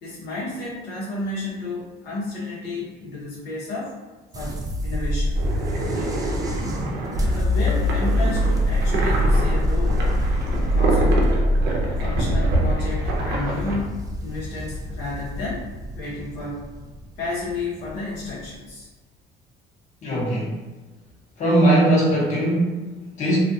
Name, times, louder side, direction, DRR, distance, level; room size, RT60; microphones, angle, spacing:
voice 1, 0.0-3.9 4.3-5.4 7.3-10.0 10.5-11.2 12.0-15.7 16.0-16.7 17.2-18.9, left 2 dB, 80° left, -6 dB, 0.8 m, -32 dB
sound 1, 4.3-18.5, equal, 20° right, 0.4 m, -24 dB
sound 2, 5.3-13.8, right 2 dB, 75° right, 0.6 m, -27 dB
voice 2, 20.0-20.6 21.4-23.4, right 1 dB, 45° left, -5 dB, 0.9 m, -20 dB
2.4 x 2.3 x 2.6 m, 1.3 s
cardioid pair, 110°, 17 cm